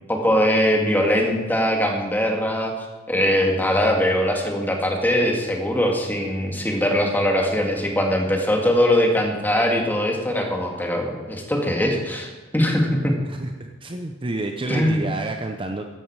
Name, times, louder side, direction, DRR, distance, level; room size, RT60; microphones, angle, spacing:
voice 1, 0.1-2.7 3.1-13.2 14.7-15.1, equal, 10° left, 1 dB, 2.1 m, -21 dB
voice 2, 13.3-15.9, right 2 dB, 25° right, 4 dB, 0.7 m, -29 dB
14.5 x 11.0 x 4.8 m, 1.3 s
head